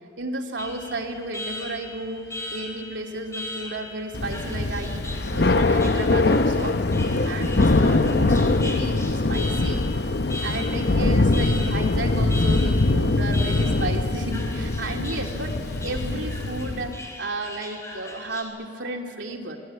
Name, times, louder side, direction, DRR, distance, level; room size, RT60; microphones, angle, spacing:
voice 1, 0.2-6.8 7.2-9.9 10.4-19.6, right 2 dB, 90° right, 1 dB, 3.0 m, -33 dB
Alarm, 0.6-18.4, left 1 dB, 15° left, 4.5 m, -39 dB
Thunder / Rain, 4.1-17.0, left 2 dB, 60° left, 0.8 m, -22 dB
28.0 x 21.0 x 8.8 m, 2.3 s
head